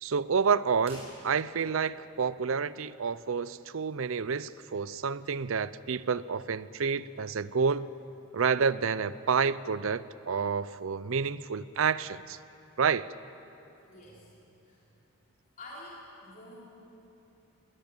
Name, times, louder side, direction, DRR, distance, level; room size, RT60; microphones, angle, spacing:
voice 1, 0.0-7.9 8.3-12.4 12.8-13.1, right 6 dB, 65° right, 17 dB, 0.5 m, -29 dB
sound 1, 0.8-1.8, right 1 dB, 30° right, 5.8 m, -50 dB
voice 2, 13.9-14.3 14.6-14.8 15.6-16.6, left 1 dB, 40° left, -5 dB, 3.5 m, -47 dB
20.5 x 19.0 x 9.0 m, 2.9 s
head